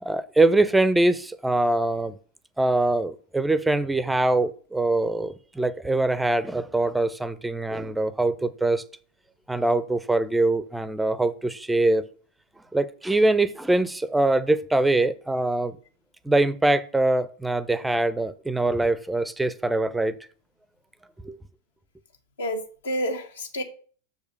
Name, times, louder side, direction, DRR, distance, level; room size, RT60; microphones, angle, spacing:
voice 1, 0.0-2.2 2.6-8.8 9.5-12.0 12.7-15.8 16.2-20.2 21.2-21.4, right 2 dB, 5° right, 0.6 m, -23 dB
voice 2, 22.4-23.6, equal, 65° left, 1.4 m, -29 dB
6.6 x 5.0 x 6.5 m
figure-of-eight pair, 90°, 0 cm